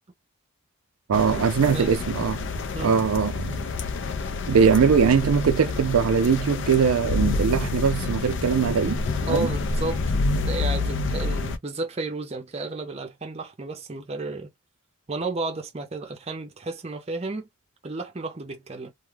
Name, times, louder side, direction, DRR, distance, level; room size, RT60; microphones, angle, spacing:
sound 1, 1.1-11.6, left 3 dB, 55° left, 0.4 m, -28 dB
voice 1, 1.1-2.4 2.8-3.7 4.5-9.5, right 6 dB, 90° right, 0.4 m, -21 dB
voice 2, 1.6-2.0 2.7-2.9 9.3-14.5 15.1-17.5 17.8-18.9, right 3 dB, 30° right, 0.6 m, -32 dB
2.3 x 2.1 x 3.2 m
head